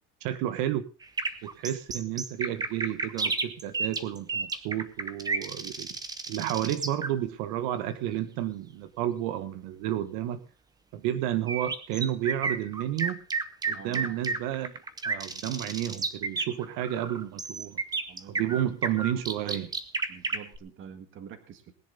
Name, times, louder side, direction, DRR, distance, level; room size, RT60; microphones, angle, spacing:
voice 1, 0.2-0.9 1.4-5.9 6.3-10.4 10.9-13.2 13.7-14.7 15.0-17.8 18.3-19.7, right 12 dB, 85° right, 12 dB, 1.5 m, -31 dB
sound 1, 1.0-7.1 11.5-20.6, right 4 dB, 10° right, 0.7 m, -32 dB
voice 2, 13.7-14.2 18.1-18.7 20.1-21.7, right 7 dB, 40° right, 9 dB, 1.8 m, -46 dB
19.5 x 10.5 x 3.9 m, 0.32 s
cardioid pair, 175°, 33 cm